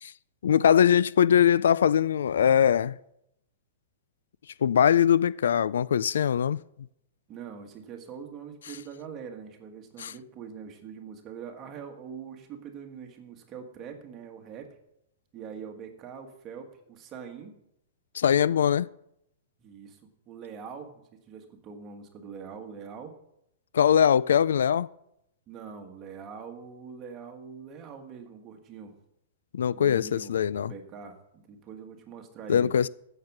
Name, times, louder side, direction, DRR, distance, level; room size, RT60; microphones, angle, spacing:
voice 1, 0.4-3.0 4.6-6.6 10.0-10.1 18.1-18.9 23.7-24.9 29.5-30.7 32.5-32.9, left 8 dB, 85° left, 0.4 m, -22 dB
voice 2, 7.3-14.7 15.3-17.5 19.6-23.2 25.5-28.9 29.7-32.7, right 6 dB, 20° right, 1.5 m, -43 dB
15.0 x 6.7 x 6.0 m
hypercardioid pair, 170°, 0 cm